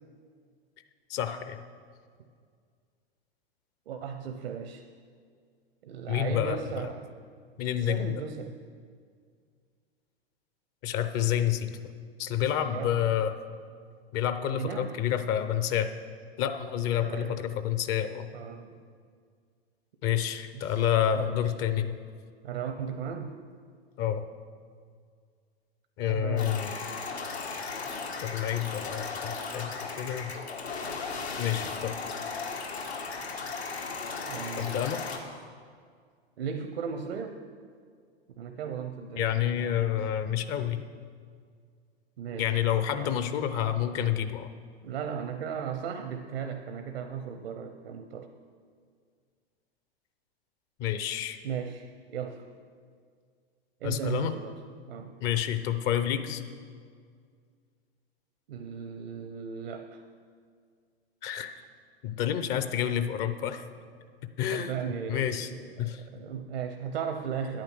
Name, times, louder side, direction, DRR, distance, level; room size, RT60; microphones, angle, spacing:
voice 1, 1.1-1.6 6.1-6.9 7.6-8.1 10.8-11.9 12.2-13.3 14.1-15.9 16.4-18.3 20.0-22.0 24.0-24.2 26.0-26.8 28.2-30.3 31.4-31.9 34.6-35.0 39.2-40.8 42.4-44.5 50.8-51.4 53.8-54.3 55.2-56.4 61.2-61.6 62.0-63.6 64.4-64.7 65.1-65.5 65.8-66.0, left 10 dB, 40° left, 10 dB, 0.7 m, -29 dB
voice 2, 3.9-4.8 5.8-7.1 7.7-8.6 12.7-13.2 14.5-15.0 17.0-17.4 18.3-18.7 20.1-20.2 20.5-20.8 21.1-21.4 22.4-23.4 26.1-26.7 34.3-34.8 36.4-37.4 38.4-39.8 42.2-42.6 42.9-43.2 44.8-48.3 51.4-52.5 53.8-54.6 54.9-55.1 58.5-60.0 64.5-67.6, right 7 dB, 65° right, 7 dB, 0.8 m, -36 dB
sound 1, 26.4-35.2, left 4 dB, 85° left, 1.7 m, -36 dB
10.5 x 9.0 x 6.1 m, 2.1 s
figure-of-eight pair, 100°, 31 cm